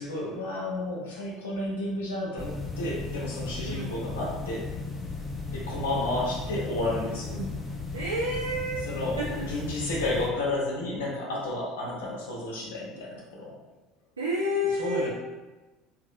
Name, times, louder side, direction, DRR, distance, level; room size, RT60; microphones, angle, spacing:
voice 1, 0.0-4.7 5.5-7.4 8.8-13.5 14.8-15.1, left 2 dB, 70° left, -4 dB, 0.7 m, -31 dB
sound 1, 2.4-10.3, left 3 dB, 10° left, 0.5 m, -36 dB
voice 2, 7.9-8.9 9.2-9.5 14.2-15.1, equal, 80° right, -5 dB, 0.3 m, -30 dB
2.7 x 2.4 x 2.6 m, 1.2 s
figure-of-eight pair, 65°, 0 cm